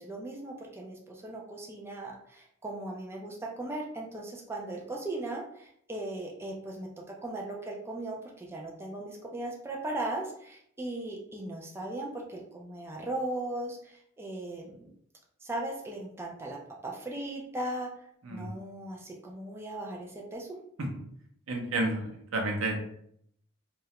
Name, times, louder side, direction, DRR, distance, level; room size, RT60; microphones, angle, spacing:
voice 1, 0.0-6.9 7.2-14.9 15.4-16.6 16.8-20.5, right 1 dB, 10° right, -1 dB, 0.3 m, -38 dB
voice 2, 21.5-22.0 22.3-22.8, right 2 dB, 75° right, 2 dB, 0.6 m, -30 dB
2.3 x 2.1 x 2.8 m, 0.68 s
head